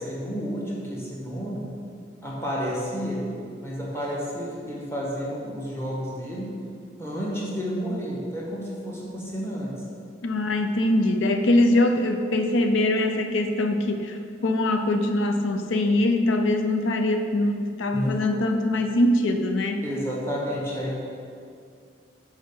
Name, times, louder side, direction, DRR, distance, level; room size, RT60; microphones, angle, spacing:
voice 1, 0.0-1.7 2.2-3.3 3.6-6.6 7.0-9.8 17.9-18.2 19.8-20.9, equal, 15° left, -5 dB, 1.4 m, -31 dB
voice 2, 10.2-19.9, left 1 dB, 90° left, 6 dB, 0.5 m, -23 dB
6.3 x 4.9 x 5.5 m, 2.3 s
head